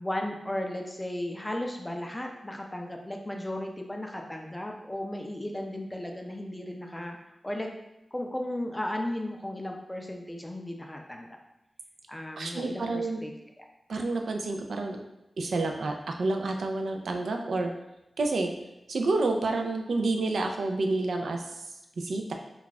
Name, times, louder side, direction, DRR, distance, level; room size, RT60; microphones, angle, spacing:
voice 1, 0.0-7.2 7.4-7.7 8.1-11.4 12.1-13.3 13.6-13.7, left 1 dB, 15° left, 2 dB, 0.3 m, -35 dB
voice 2, 12.4-13.2 13.9-15.0 15.4-17.7 18.2-18.5 18.9-21.6 22.0-22.3, right 2 dB, 85° right, 3 dB, 0.3 m, -29 dB
2.3 x 2.2 x 3.9 m, 0.91 s
wide cardioid pair, 125°, 0 cm